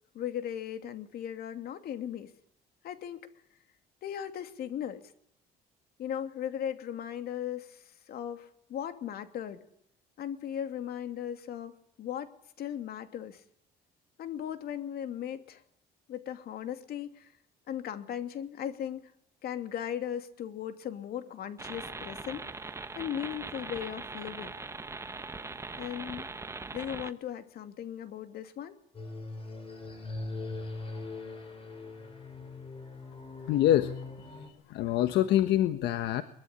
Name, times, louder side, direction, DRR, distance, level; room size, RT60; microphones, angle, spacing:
voice 1, 0.1-2.3 2.8-3.3 4.0-5.0 6.0-9.6 10.2-12.3 12.6-13.4 14.2-15.6 16.1-17.3 17.7-19.1 19.4-24.5 25.8-26.3 26.7-28.8, left 9 dB, 65° left, 8 dB, 2.8 m, -37 dB
sound 1, 21.6-27.1, right 3 dB, 15° right, 1.3 m, -41 dB
sound 2, 28.9-34.5, left 3 dB, 35° left, 8.0 m, -41 dB
voice 2, 33.5-33.9 34.7-36.2, left 12 dB, 80° left, 10 dB, 1.5 m, -25 dB
23.0 x 22.5 x 9.8 m, 0.68 s
cardioid pair, 110°, 17 cm